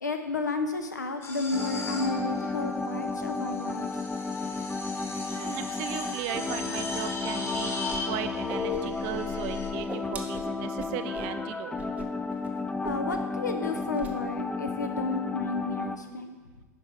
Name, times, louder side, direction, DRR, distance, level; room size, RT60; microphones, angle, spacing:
voice 1, 0.0-3.9 12.8-16.4, left 3 dB, 85° left, 7 dB, 0.7 m, -32 dB
sound 1, 1.2-9.7, left 3 dB, 30° left, 1.0 m, -37 dB
sound 2, 1.5-16.0, left 3 dB, 10° left, 0.4 m, -33 dB
voice 2, 5.3-7.7 8.0-11.8, right 11 dB, 50° right, 10 dB, 0.5 m, -37 dB
Whoosh swoosh swish, 7.9-8.0 8.3-9.2 9.5-11.3 11.7-12.1 12.3-12.5 12.8-13.3 13.6-14.1, right 4 dB, 15° right, 0.8 m, -41 dB
10.5 x 4.5 x 3.2 m, 1.3 s
figure-of-eight pair, 85°, 9 cm